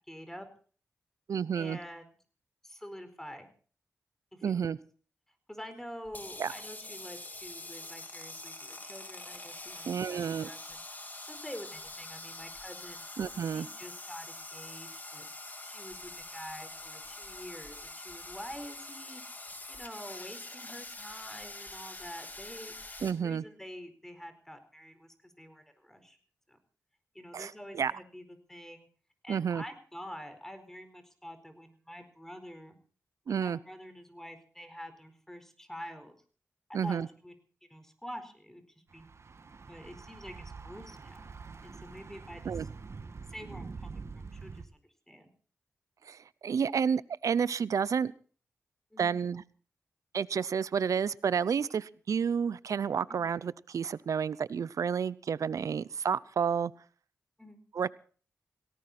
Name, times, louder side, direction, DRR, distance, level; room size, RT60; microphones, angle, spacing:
voice 1, 0.1-0.5 1.5-2.2 2.6-3.5 4.5-4.6 5.5-13.0 13.4-15.3 15.6-19.2 19.7-22.7 23.2-26.2 26.5-26.6 27.1-28.9 29.2-32.8 33.3-36.1 36.7-37.3 37.7-38.6 38.9-39.1 39.7-41.3 41.6-42.7 43.3-44.7 45.1-45.3 48.9-49.2 53.1-53.3 57.4-57.6, equal, 5° left, 9 dB, 4.5 m, -47 dB
voice 2, 1.3-1.8 4.4-4.8 6.4-6.5 9.8-10.5 13.2-13.7 23.0-23.4 27.3-27.9 29.3-29.6 33.3-33.6 36.7-37.1 42.4-42.6 46.1-48.1 49.0-49.4 50.1-56.7 57.7-57.9, right 7 dB, 80° right, 20 dB, 0.7 m, -30 dB
sound 1, 6.0-23.1, left 2 dB, 35° left, 3.7 m, -45 dB
Thunder / Bicycle, 38.9-44.6, right 4 dB, 55° right, 1.7 m, -45 dB
18.0 x 18.0 x 4.3 m, 0.43 s
cardioid pair, 65°, 5 cm